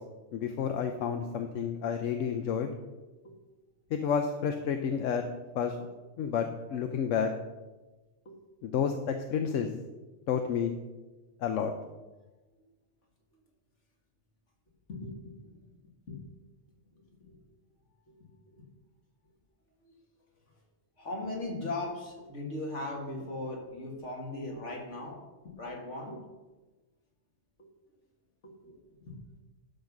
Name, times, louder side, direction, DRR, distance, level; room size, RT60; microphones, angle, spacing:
voice 1, 0.3-2.7 3.9-5.2 5.5-5.8 6.2-7.3 8.6-9.7 10.3-10.7 11.4-11.7, left 7 dB, 90° left, 6 dB, 1.0 m, -30 dB
voice 2, 14.9-15.3 16.1-16.2 17.2-17.3 18.1-18.2 19.8-19.9 21.0-25.2 25.6-26.2 28.4-28.8 29.1-29.2, left 2 dB, 70° left, 0 dB, 2.2 m, -38 dB
11.5 x 4.0 x 6.0 m, 1.2 s
omnidirectional pair, 1.3 m